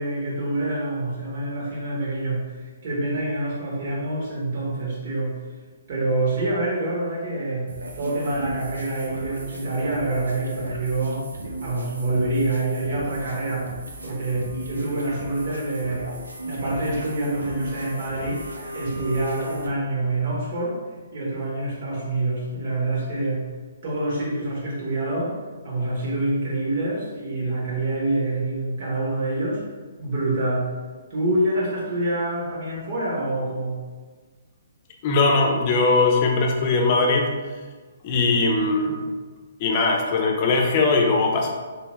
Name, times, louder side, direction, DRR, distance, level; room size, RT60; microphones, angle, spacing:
voice 1, 0.0-5.4 5.9-11.2 11.6-13.7 14.0-16.1 16.4-18.4 18.7-20.7 21.1-23.5 23.8-25.3 25.6-29.6 30.0-30.7 31.1-33.8, right 2 dB, 50° right, -5 dB, 1.4 m, -26 dB
sound 1, 7.7-19.7, right 2 dB, 85° right, 0.6 m, -35 dB
voice 2, 35.0-37.3 38.0-39.1 39.6-41.5, left 3 dB, 40° left, 1 dB, 0.6 m, -20 dB
3.4 x 2.8 x 3.1 m, 1.4 s
figure-of-eight pair, 130°, 0 cm